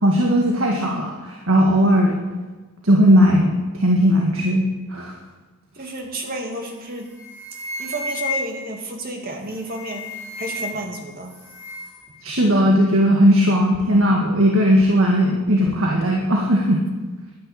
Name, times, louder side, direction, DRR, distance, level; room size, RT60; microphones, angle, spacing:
voice 1, 0.0-2.2 2.8-5.1 12.2-16.8, equal, 65° right, -1 dB, 1.9 m, -17 dB
voice 2, 5.7-7.1 7.8-11.4, right 2 dB, 45° right, 2 dB, 2.4 m, -31 dB
sound 1, 6.5-6.8 7.0-8.7 9.5-11.0 11.2-12.0, left 3 dB, 10° right, 4.0 m, -32 dB
12.0 x 10.5 x 8.6 m, 1.2 s
head